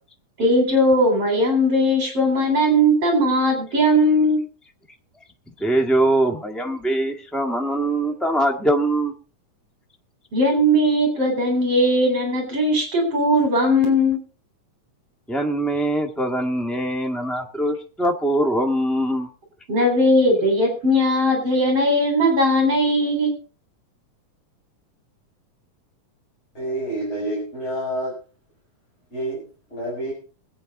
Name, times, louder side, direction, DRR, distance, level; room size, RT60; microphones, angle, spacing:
voice 1, 0.4-4.4 10.3-14.2 19.7-23.4, equal, 45° right, 3 dB, 4.8 m, -19 dB
voice 2, 5.6-9.1 15.3-19.3, right 1 dB, ahead, 3 dB, 0.6 m, -22 dB
voice 3, 26.5-28.2 29.1-30.1, right 1 dB, 20° left, -4 dB, 5.6 m, -28 dB
22.0 x 8.8 x 3.8 m, 0.36 s
omnidirectional pair, 3.7 m